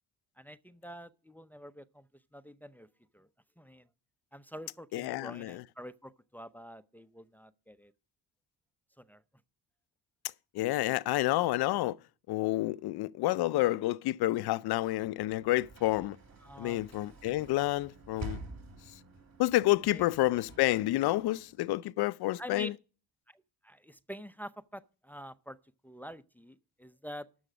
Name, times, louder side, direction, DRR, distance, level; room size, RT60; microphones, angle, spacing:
voice 1, 0.4-2.9 3.1-3.3 3.6-3.9 4.3-7.9 9.0-9.2 16.4-17.0 19.9-20.1 22.4-22.7 23.3-25.6 25.8-27.3, equal, 5° left, 0.6 m, -47 dB
voice 2, 4.9-5.6 10.5-12.0 12.3-16.2 16.6-18.4 19.4-22.7, left 17 dB, 65° left, 0.6 m, -29 dB
Sliding door / Slam, 14.8-21.8, right 2 dB, 40° right, 2.9 m, -49 dB
12.5 x 7.2 x 5.0 m
supercardioid pair, 65°, 42 cm